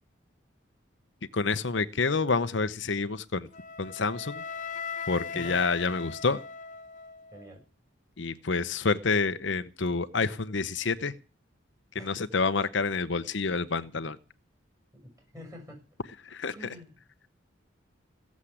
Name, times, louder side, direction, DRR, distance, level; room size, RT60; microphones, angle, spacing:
voice 1, 1.3-3.5 3.8-4.4 5.1-6.4 8.2-11.1 11.9-14.2 16.2-16.7, left 4 dB, 65° left, 0.8 m, -28 dB
Wind instrument woodwind instrument, 3.5-7.6, left 6 dB, 40° left, 0.9 m, -39 dB
voice 2, 15.3-15.8 16.5-16.9, equal, 15° right, 7.0 m, -45 dB
16.5 x 7.4 x 9.9 m
head